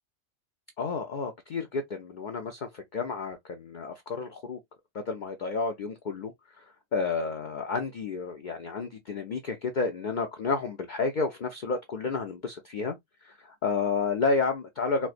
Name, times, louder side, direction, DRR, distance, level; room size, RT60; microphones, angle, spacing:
voice 1, 0.8-4.6 5.1-6.3 6.6-6.7 6.9-12.9 13.2-15.1, left 4 dB, 55° left, 0.5 m, -31 dB
4.4 x 2.1 x 2.4 m
omnidirectional pair, 1.3 m